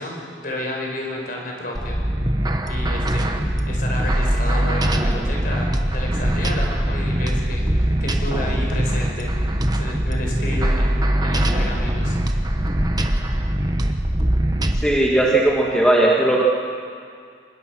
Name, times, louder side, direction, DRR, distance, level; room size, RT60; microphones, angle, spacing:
voice 1, 0.0-2.0 2.7-9.3 9.7-12.2, left 1 dB, 50° left, 0 dB, 5.2 m, -31 dB
sound 1, 1.8-14.8, right 1 dB, 20° right, 1.1 m, -22 dB
voice 2, 14.8-16.4, right 1 dB, 5° left, -4 dB, 1.7 m, -17 dB
25.0 x 21.5 x 6.2 m, 2.2 s
head